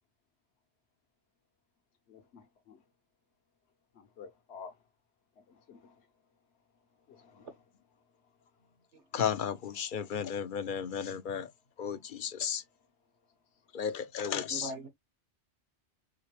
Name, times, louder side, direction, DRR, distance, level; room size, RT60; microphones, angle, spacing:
voice 1, 2.1-2.8 3.9-4.8 5.4-6.1 7.1-7.6 14.7-14.9, left 5 dB, 70° left, 1.2 m, -52 dB
voice 2, 9.1-11.5 11.8-12.6 13.7-14.7, left 8 dB, 55° left, 0.7 m, -34 dB
voice 3, 14.3-14.9, right 1 dB, 80° right, 1.6 m, -41 dB
4.9 x 3.3 x 3.2 m
omnidirectional pair, 1.2 m